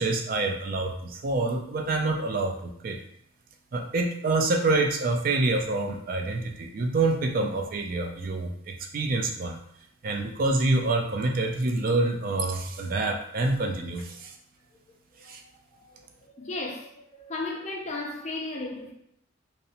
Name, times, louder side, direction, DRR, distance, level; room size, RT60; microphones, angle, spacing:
voice 1, 0.0-3.0 3.7-9.6 10.0-14.3 15.2-15.4, right 2 dB, 45° right, 0.3 m, -27 dB
voice 2, 16.4-18.9, left 2 dB, 35° left, 0.4 m, -35 dB
2.6 x 2.0 x 2.7 m
head